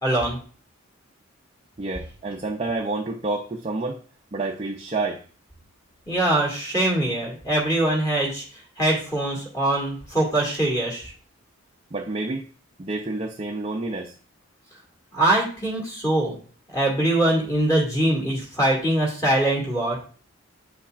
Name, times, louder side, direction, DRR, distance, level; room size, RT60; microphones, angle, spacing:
voice 1, 0.0-0.4 6.1-8.4 8.8-11.1 15.1-16.3 16.7-20.0, right 1 dB, 15° left, 2.2 m, -23 dB
voice 2, 1.8-4.0 4.3-5.2 11.9-12.5 12.8-14.2, right 3 dB, 30° right, 0.5 m, -29 dB
8.8 x 5.7 x 2.5 m
head